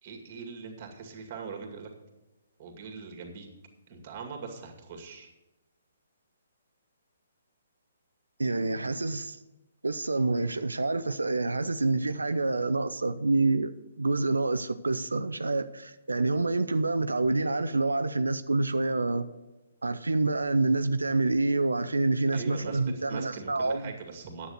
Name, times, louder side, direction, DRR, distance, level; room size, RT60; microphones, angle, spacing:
voice 1, 0.0-1.9 2.6-3.5 3.9-5.3 22.3-22.8 23.1-24.5, right 5 dB, 40° right, 2.2 m, -41 dB
voice 2, 8.4-9.4 9.8-19.3 19.8-23.9, right 3 dB, 80° right, 0.5 m, -27 dB
10.0 x 8.1 x 6.6 m
figure-of-eight pair, 130°, 0 cm